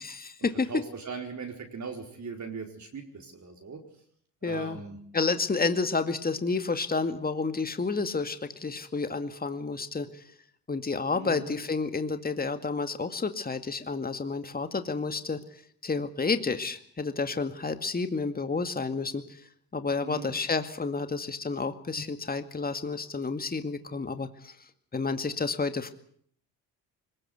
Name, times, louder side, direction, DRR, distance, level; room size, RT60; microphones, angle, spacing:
voice 1, 0.0-0.7 4.4-4.8 5.1-10.2 10.7-15.4 15.8-19.4 19.7-24.5 24.9-25.9, left 4 dB, 20° left, 9 dB, 2.1 m, -30 dB
voice 2, 0.6-3.8 4.4-5.0 11.1-11.5 20.0-20.3, right 5 dB, 40° right, 2 dB, 4.7 m, -39 dB
22.0 x 20.0 x 8.1 m, 0.64 s
supercardioid pair, 65°, 42 cm